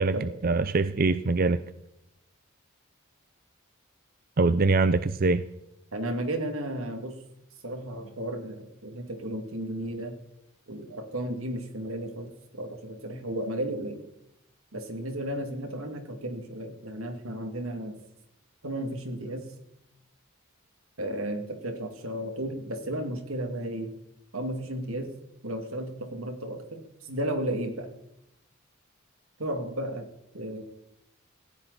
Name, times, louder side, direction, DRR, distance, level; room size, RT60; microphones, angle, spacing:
voice 1, 0.0-1.6 4.4-5.4, right 3 dB, 45° right, 13 dB, 0.5 m, -23 dB
voice 2, 5.9-7.2 7.6-10.2 10.7-14.0 14.7-18.0 18.6-19.5 21.0-23.9 24.3-25.1 25.4-27.9 29.4-30.1 30.3-30.6, right 1 dB, 90° right, 5 dB, 2.5 m, -34 dB
18.0 x 15.5 x 4.2 m, 0.85 s
head